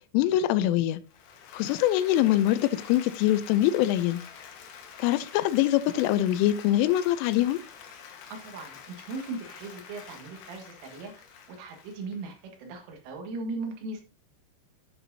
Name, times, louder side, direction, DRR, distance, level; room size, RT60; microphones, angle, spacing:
voice 1, 0.1-1.0 1.5-4.2 5.0-7.6, left 13 dB, 85° left, 3.1 m, -24 dB
Applause, 1.0-12.8, left 7 dB, 70° left, 3.1 m, -47 dB
voice 2, 8.3-11.1 11.5-14.1, right 3 dB, 80° right, 4.2 m, -38 dB
10.5 x 8.1 x 2.7 m
omnidirectional pair, 5.6 m